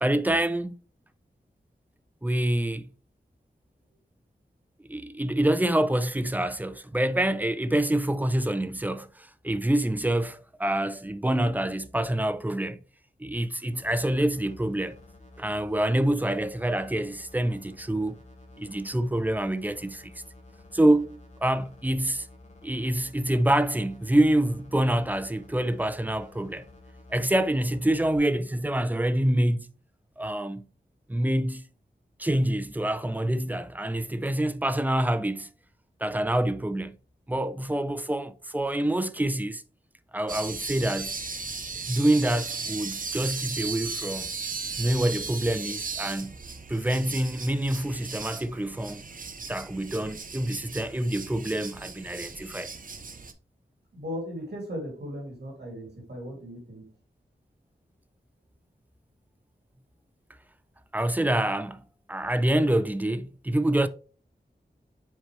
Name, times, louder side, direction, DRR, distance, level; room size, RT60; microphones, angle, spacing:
voice 1, 0.0-0.8 2.2-2.9 4.9-12.8 13.2-15.0 15.4-18.2 18.6-20.2 20.7-22.3 22.6-26.7 27.1-29.7 30.2-30.7 31.1-31.7 32.2-35.5 36.0-37.0 37.3-39.6 40.1-41.2 41.9-44.3 44.8-46.4 46.7-49.0 49.5-52.7 60.9-63.9, right 1 dB, 10° right, 0.5 m, -26 dB
sound 1, 13.7-28.2, left 2 dB, 45° left, 1.7 m, -51 dB
sound 2, 40.3-53.3, right 4 dB, 55° right, 0.7 m, -37 dB
voice 2, 53.9-56.9, equal, 75° right, 2.7 m, -37 dB
7.5 x 4.6 x 3.2 m
wide cardioid pair, 100°, 17 cm